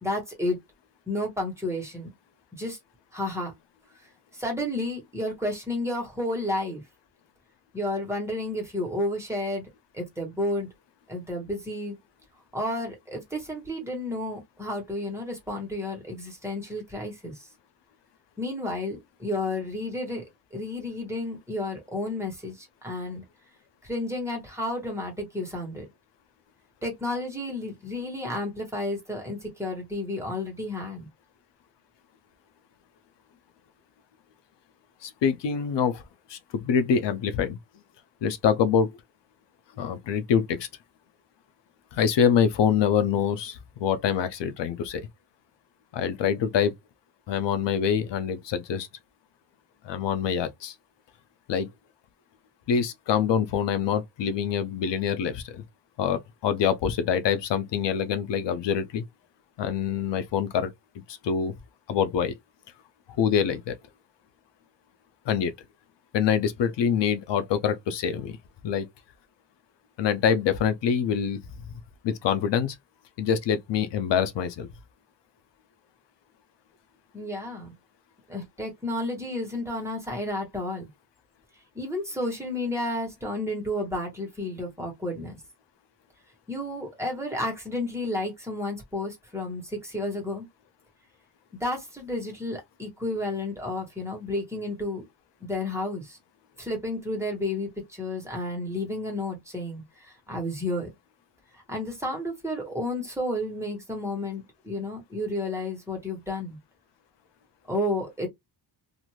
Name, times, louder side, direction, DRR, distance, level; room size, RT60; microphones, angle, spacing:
voice 1, 0.0-0.6 1.1-2.1 2.5-2.8 3.1-3.5 4.3-6.8 7.7-9.7 9.9-10.7 11.1-12.0 12.5-17.5 18.4-20.2 20.5-23.2 23.8-25.9 26.8-31.1 77.1-77.7 78.3-80.9 81.7-85.4 86.5-90.5 91.6-95.0 95.4-96.2 96.6-100.9 101.5-106.6 107.7-108.3, left 1 dB, 5° right, 1.2 m, -31 dB
voice 2, 35.0-36.0 36.3-37.6 38.2-38.9 39.8-40.7 41.9-45.0 45.9-46.7 47.3-48.9 49.8-50.7 51.5-51.7 52.7-55.6 56.0-59.0 59.6-60.7 61.1-61.5 61.9-62.3 63.2-63.8 65.3-65.5 66.1-68.4 68.6-68.9 70.0-71.4 72.0-72.8 73.2-74.7, left 7 dB, 90° left, 0.6 m, -25 dB
2.5 x 2.5 x 2.9 m
wide cardioid pair, 135°, 41 cm